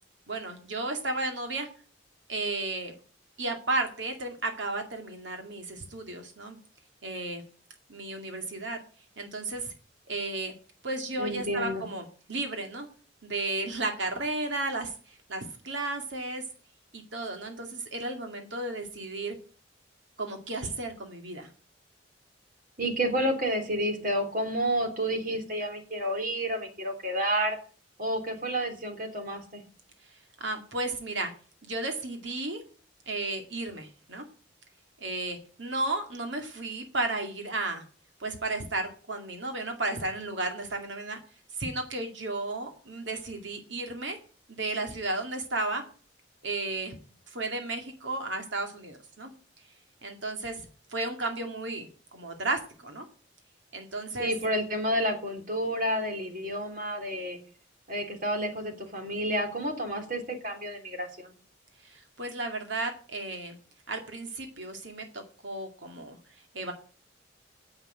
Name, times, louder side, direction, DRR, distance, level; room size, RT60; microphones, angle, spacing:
voice 1, 0.3-1.7 2.3-2.9 3.4-6.6 7.0-7.4 7.9-8.8 9.2-9.7 10.1-10.5 10.8-12.9 13.2-16.4 16.9-19.3 20.2-21.5 30.1-31.3 31.6-32.6 33.1-34.2 35.0-37.8 38.2-41.2 41.5-44.2 44.6-45.8 46.4-46.9 47.3-49.3 50.0-53.0 53.7-54.3 61.8-63.6 63.9-66.7, right 2 dB, 80° right, 4 dB, 2.2 m, -33 dB
voice 2, 11.2-11.8 22.8-27.6 28.0-29.6 54.2-57.4 57.9-61.3, equal, 50° right, 4 dB, 3.1 m, -30 dB
9.7 x 8.0 x 9.0 m, 0.41 s
head